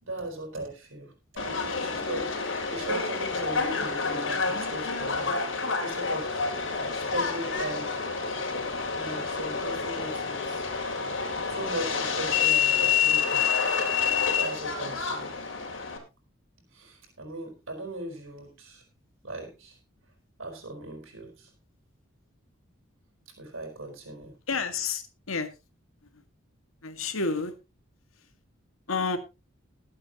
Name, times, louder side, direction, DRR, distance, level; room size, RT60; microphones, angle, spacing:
voice 1, 0.0-6.3 6.9-8.0 8.9-10.6 11.2-13.4 14.3-15.5 16.7-18.8 19.2-19.8 20.4-21.5 23.3-24.3, right 2 dB, 80° right, 3 dB, 4.7 m, -38 dB
Subway metro underground, 1.4-16.0, left 5 dB, 70° left, 3.3 m, -28 dB
voice 2, 24.5-25.5 26.1-26.2 26.8-27.5 28.9-29.2, left 4 dB, 90° left, 8 dB, 1.9 m, -30 dB
20.5 x 8.6 x 3.0 m, 0.27 s
head